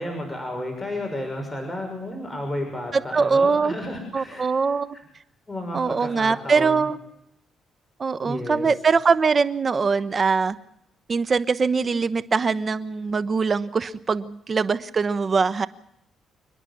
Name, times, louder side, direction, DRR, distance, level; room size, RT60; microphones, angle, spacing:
voice 1, 0.0-5.0 5.5-6.8 8.2-8.7, left 1 dB, 10° left, 2 dB, 6.3 m, -32 dB
voice 2, 2.9-3.7 4.1-5.0 5.7-7.0 8.0-10.6 11.1-15.7, right 5 dB, 35° right, 15 dB, 1.1 m, -22 dB
28.5 x 10.5 x 9.9 m, 0.80 s
cardioid pair, 90°, 0 cm